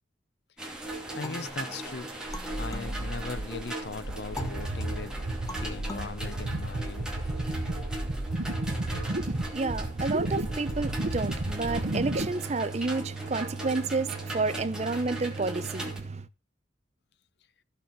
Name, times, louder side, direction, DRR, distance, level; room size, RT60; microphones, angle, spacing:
sound 1, 0.6-16.0, right 1 dB, 5° right, 2.5 m, -39 dB
voice 1, 1.1-2.1 2.5-5.2 5.5-7.5, left 4 dB, 60° left, 0.7 m, -39 dB
sound 2, 1.2-3.7 4.4-7.2, left 1 dB, 20° left, 0.8 m, -43 dB
sound 3, 2.3-12.3, right 1 dB, 75° right, 1.2 m, -33 dB
voice 2, 9.0-16.3, right 3 dB, 35° right, 0.6 m, -30 dB
14.5 x 6.7 x 4.5 m
head